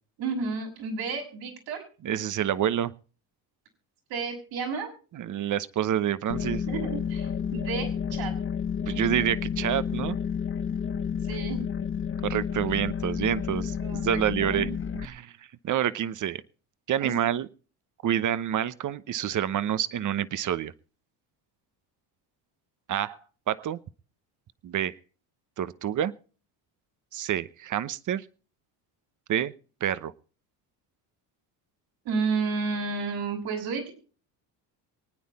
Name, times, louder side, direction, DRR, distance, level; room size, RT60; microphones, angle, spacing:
voice 1, 0.2-1.8 4.1-4.9 6.7-8.3 11.3-11.6 13.8-14.8 17.0-17.1 23.0-23.2 32.0-33.9, right 4 dB, 75° right, 1 dB, 6.6 m, -31 dB
voice 2, 2.0-2.9 5.1-6.6 8.9-10.2 12.2-14.7 14.9-15.3 15.6-16.4 16.9-17.5 18.0-20.7 22.9-23.1 23.5-23.8 24.6-24.9 25.6-26.1 27.1-28.2 29.3-29.5 29.8-30.1, right 10 dB, 40° right, 16 dB, 0.9 m, -28 dB
sound 1, 6.3-15.0, left 7 dB, 25° left, 1.1 m, -31 dB
23.5 x 9.5 x 4.2 m, 0.39 s
supercardioid pair, 90°, 46 cm